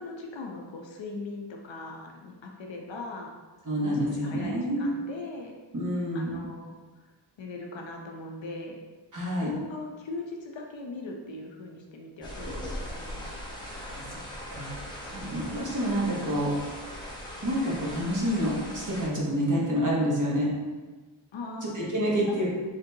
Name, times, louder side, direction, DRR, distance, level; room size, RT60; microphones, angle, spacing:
voice 1, 0.0-3.3 3.8-5.5 6.1-6.8 7.4-8.8 9.4-13.3 21.3-21.8 22.2-22.4, left 2 dB, 65° left, 1 dB, 0.7 m, -39 dB
voice 2, 3.6-4.9 5.7-6.4 9.1-9.5 13.7-14.2 14.5-16.5 17.4-20.5 21.6-22.5, equal, 40° right, -5 dB, 1.1 m, -28 dB
sound 1, 12.2-19.1, equal, 10° left, 0.8 m, -39 dB
3.9 x 3.4 x 2.7 m, 1.3 s
wide cardioid pair, 80°, 49 cm